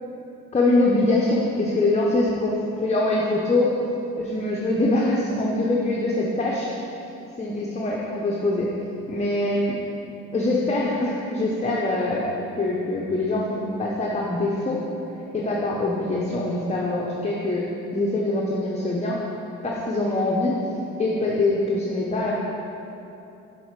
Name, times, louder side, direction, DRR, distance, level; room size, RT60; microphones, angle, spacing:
voice 1, 0.5-3.7 4.2-6.7 7.4-8.7 9.1-9.8 10.3-14.8 15.3-17.6 17.9-19.2 19.6-20.6 21.0-22.3, left 2 dB, 20° left, -3 dB, 0.8 m, -23 dB
6.2 x 5.8 x 4.7 m, 2.9 s
cardioid pair, 90°, 30 cm